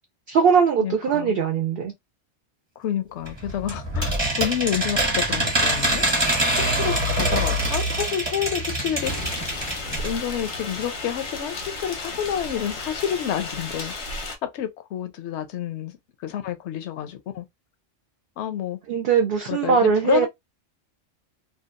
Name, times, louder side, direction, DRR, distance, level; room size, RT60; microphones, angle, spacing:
voice 1, 0.3-1.9 18.9-20.3, right 6 dB, 60° right, 0.7 m, -20 dB
voice 2, 0.8-1.4 2.8-6.1 6.6-9.3 10.0-13.9 14.4-17.5 18.4-18.8 19.5-20.3, left 10 dB, 70° left, 0.8 m, -29 dB
sound 1, 3.3-10.2 10.5-10.6 10.8-10.9, right 1 dB, 25° right, 0.9 m, -24 dB
sound 2, 9.0-14.4, left 2 dB, 85° left, 1.2 m, -33 dB
2.8 x 2.2 x 2.4 m
omnidirectional pair, 1.3 m